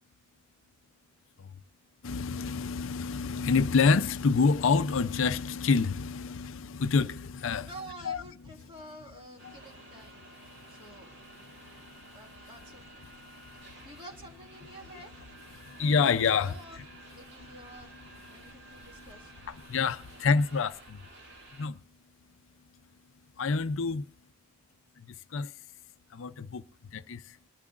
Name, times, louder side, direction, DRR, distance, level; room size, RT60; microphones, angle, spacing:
voice 1, 2.0-7.7 8.0-8.2 9.4-9.6 11.5-11.9 13.1-13.9 15.5-16.5 18.5-18.6 19.4-21.0 21.6-21.8 23.4-24.0 25.1-25.5 26.1-26.6 26.9-27.4, left 5 dB, 60° left, 0.5 m, -28 dB
voice 2, 7.6-10.3 10.7-11.1 11.7-11.9 12.1-12.8 13.5-15.1 16.4-16.8 17.1-18.0 18.3-19.3, right 1 dB, 25° right, 1.9 m, -49 dB
sound 1, 9.4-21.7, right 2 dB, 50° right, 2.4 m, -52 dB
22.5 x 12.0 x 2.5 m
head